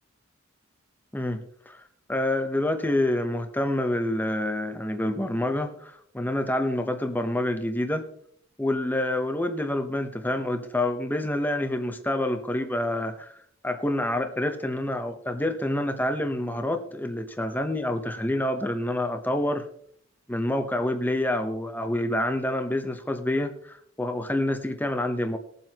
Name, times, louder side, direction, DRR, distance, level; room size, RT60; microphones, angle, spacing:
voice 1, 1.1-1.8 2.1-8.1 8.6-13.3 13.6-19.7 20.3-25.4, left 1 dB, 10° left, 7 dB, 0.9 m, -27 dB
20.5 x 7.6 x 3.0 m, 0.66 s
head